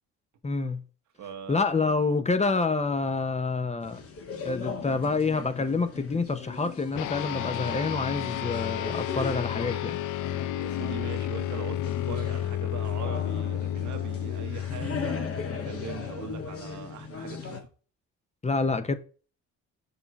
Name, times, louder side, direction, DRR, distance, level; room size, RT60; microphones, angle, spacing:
voice 1, 0.4-0.8 1.5-4.0 4.4-10.0 18.4-19.0, left 4 dB, 20° left, 0.9 m, -27 dB
voice 2, 1.2-2.0 10.5-17.7, right 8 dB, 70° right, 1.4 m, -41 dB
sound 1, 3.8-17.6, left 6 dB, 50° left, 2.0 m, -38 dB
sound 2, 7.0-16.7, left 11 dB, 80° left, 0.6 m, -32 dB
6.7 x 3.8 x 6.1 m
cardioid pair, 90°, 30 cm